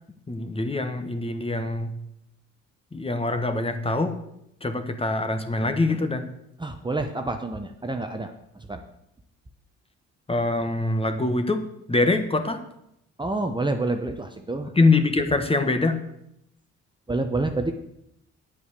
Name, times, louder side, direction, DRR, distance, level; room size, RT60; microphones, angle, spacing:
voice 1, 0.3-1.9 2.9-4.2 4.6-6.3 10.3-12.6 14.7-16.0, left 2 dB, 20° left, 7 dB, 1.4 m, -24 dB
voice 2, 6.6-8.3 8.7-8.8 13.2-14.7 17.1-17.7, right 2 dB, 15° right, 5 dB, 1.0 m, -28 dB
9.5 x 8.4 x 6.8 m, 0.79 s
cardioid pair, 90°, 30 cm